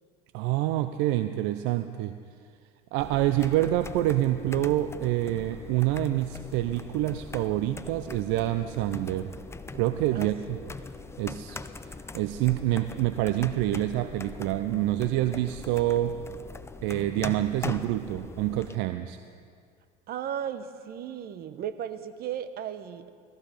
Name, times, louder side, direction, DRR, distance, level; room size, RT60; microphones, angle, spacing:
voice 1, 0.3-2.1 2.9-9.3 9.7-10.6 11.2-11.6 12.1-16.2 16.8-19.2, right 14 dB, 65° right, 10 dB, 0.7 m, -27 dB
sound 1, 3.0-18.8, left 3 dB, 15° left, 0.7 m, -41 dB
voice 2, 10.1-10.7 20.1-23.1, right 9 dB, 50° right, 11 dB, 1.1 m, -36 dB
18.5 x 14.0 x 5.2 m, 2.2 s
hypercardioid pair, 80°, 20 cm